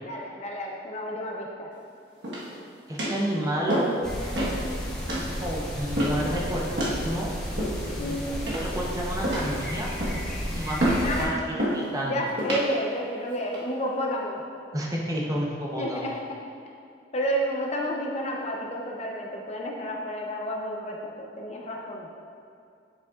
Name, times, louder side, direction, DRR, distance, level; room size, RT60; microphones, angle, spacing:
voice 1, 0.0-1.7 8.0-8.3 11.0-11.5 11.7-14.4 15.7-16.2 17.1-22.1, equal, 35° left, -1 dB, 0.6 m, -31 dB
sound 1, 2.2-2.6 3.0-3.2 3.7-4.0 4.3-4.6 5.1-5.3 6.0-6.3 6.8-7.0 7.6-8.0 8.5-8.8 9.2-9.6 10.0-10.3 10.8-11.1 11.6-11.8 12.4-12.7 13.3-13.6, equal, 65° right, 1.3 m, -28 dB
voice 2, 2.9-3.9 5.3-7.3 7.9-9.9 10.5-12.1 14.7-16.1, equal, 20° right, -3 dB, 0.8 m, -31 dB
sound 2, 4.0-11.2, equal, 5° left, 1.0 m, -33 dB
7.8 x 6.6 x 2.4 m, 2.4 s
head